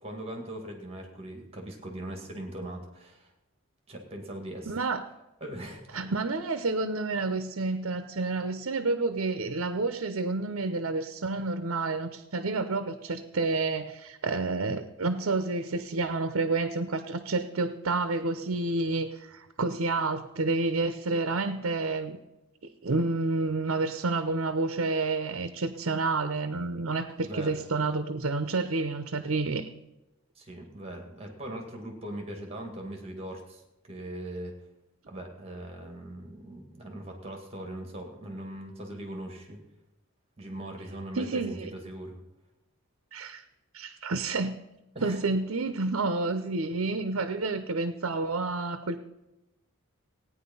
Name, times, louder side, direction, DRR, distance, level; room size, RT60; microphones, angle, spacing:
voice 1, 0.0-3.3 3.9-4.7 5.4-6.0 27.2-27.6 30.4-34.5 35.1-39.6 40.4-42.2 45.0-45.2, right 1 dB, 30° right, 2 dB, 2.2 m, -40 dB
voice 2, 4.7-5.1 5.9-22.2 22.8-29.7 41.1-41.7 43.1-43.4 43.7-44.6 45.0-49.0, right 3 dB, 70° right, 9 dB, 0.8 m, -29 dB
17.0 x 9.6 x 5.5 m, 0.96 s
head